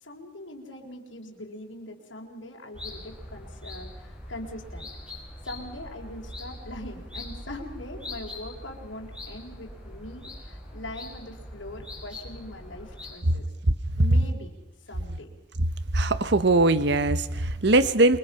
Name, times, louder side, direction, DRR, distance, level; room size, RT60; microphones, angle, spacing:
voice 1, 0.0-4.9 5.4-13.5 14.0-14.5 14.9-15.3, left 1 dB, 85° left, 0 dB, 4.0 m, -41 dB
sound 1, 2.7-13.2, left 1 dB, 5° right, 5.8 m, -42 dB
voice 2, 15.9-18.2, right 2 dB, 60° right, 14 dB, 0.9 m, -21 dB
28.0 x 23.0 x 5.6 m, 0.93 s
head